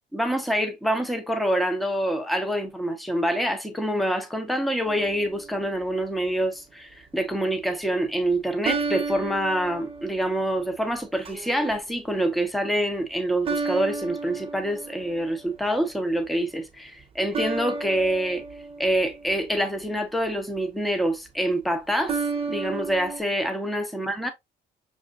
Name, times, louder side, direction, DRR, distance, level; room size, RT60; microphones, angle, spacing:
voice 1, 0.1-18.4 18.8-22.2 22.5-24.3, right 1 dB, ahead, 0.8 m, -26 dB
sound 1, 4.9-5.7 8.6-10.7 11.3-11.7 13.5-15.4 17.3-19.8 22.1-23.2, right 4 dB, 35° right, 0.9 m, -32 dB
6.4 x 2.5 x 2.4 m
cardioid pair, 110°, 17 cm